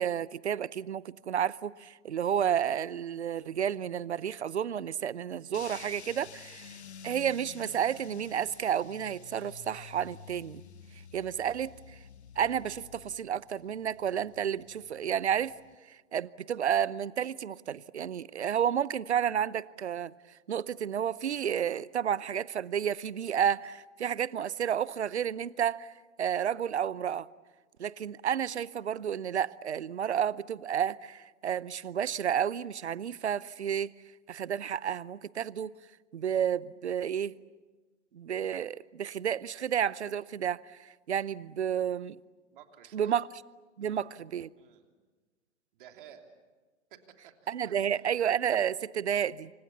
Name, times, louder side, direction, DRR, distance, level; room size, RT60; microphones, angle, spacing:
voice 1, 0.0-6.8 7.0-10.6 11.1-11.7 12.4-15.6 15.9-20.1 20.5-25.9 26.2-27.3 27.8-33.9 34.3-35.7 36.1-37.4 38.1-42.2 42.9-43.3 43.8-44.5 47.5-49.5, right 9 dB, 65° right, 0.8 m, -31 dB
sound 1, 5.5-15.8, left 7 dB, 65° left, 1.1 m, -51 dB
voice 2, 42.5-43.2 43.8-44.1 44.6-44.9 45.7-46.2 46.9-47.0 47.2-48.1, right 9 dB, 45° right, 3.2 m, -54 dB
29.0 x 25.5 x 7.1 m
figure-of-eight pair, 110°, 36 cm